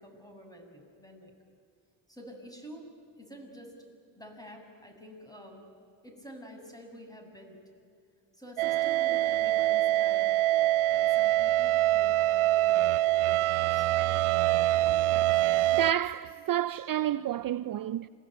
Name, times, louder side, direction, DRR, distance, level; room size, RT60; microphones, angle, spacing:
voice 1, 0.0-1.3 2.1-2.9 3.2-3.7 4.2-5.6 6.0-7.6 8.3-10.3 10.9-13.9, equal, 10° left, 7.0 m, -48 dB
sound 1, 8.6-15.9, right 15 dB, 80° right, 0.8 m, -25 dB
voice 2, 15.7-18.1, right 11 dB, 45° right, 0.6 m, -30 dB
27.0 x 20.0 x 9.2 m
supercardioid pair, 70°, 48 cm